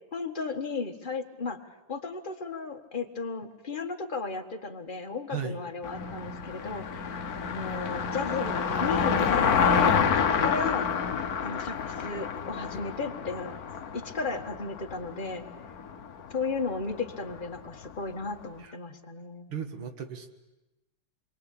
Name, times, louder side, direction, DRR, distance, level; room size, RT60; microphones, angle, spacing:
voice 1, 0.1-1.6 1.9-7.1 7.5-11.0 11.4-13.6 13.9-15.4 16.3-19.5, left 4 dB, 25° left, 4 dB, 1.7 m, -34 dB
Car passing by, 5.8-18.2, left 6 dB, 50° left, 1.4 m, -29 dB
voice 2, 19.5-20.3, right 7 dB, 75° right, 6 dB, 2.5 m, -35 dB
28.0 x 23.0 x 8.6 m, 1.0 s
omnidirectional pair, 2.4 m